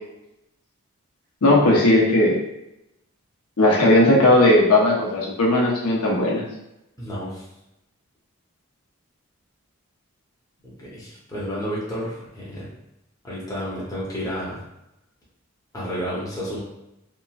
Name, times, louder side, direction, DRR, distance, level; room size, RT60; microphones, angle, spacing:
voice 1, 1.4-2.4 3.6-6.4, left 1 dB, 85° left, -3 dB, 0.7 m, -17 dB
voice 2, 7.0-7.5 10.6-12.7 13.2-14.6 15.7-16.6, equal, 15° left, -8 dB, 0.7 m, -31 dB
2.9 x 2.4 x 2.3 m, 0.88 s
head